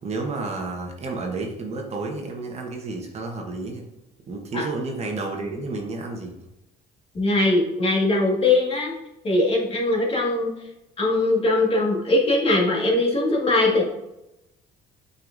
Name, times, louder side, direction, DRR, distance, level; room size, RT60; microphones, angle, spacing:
voice 1, 0.0-3.9 4.3-6.3, right 3 dB, 40° right, 2 dB, 1.2 m, -31 dB
voice 2, 7.1-8.9 9.2-10.5 11.0-13.8, left 2 dB, 35° left, -2 dB, 1.9 m, -21 dB
7.7 x 5.6 x 2.6 m, 0.90 s
cardioid pair, 110°, 17 cm